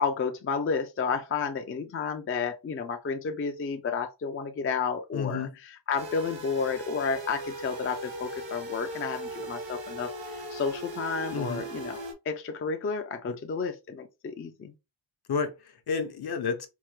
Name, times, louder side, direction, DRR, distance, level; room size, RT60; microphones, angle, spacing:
voice 1, 0.0-14.7, left 5 dB, 30° left, 0.4 m, -31 dB
voice 2, 5.1-5.5 11.3-11.6 13.3-13.4 15.3-16.7, left 5 dB, 60° left, 0.7 m, -31 dB
sound 1, 6.0-12.1, right 1 dB, 80° right, 1.6 m, -38 dB
4.5 x 2.1 x 3.1 m
wide cardioid pair, 130°, 44 cm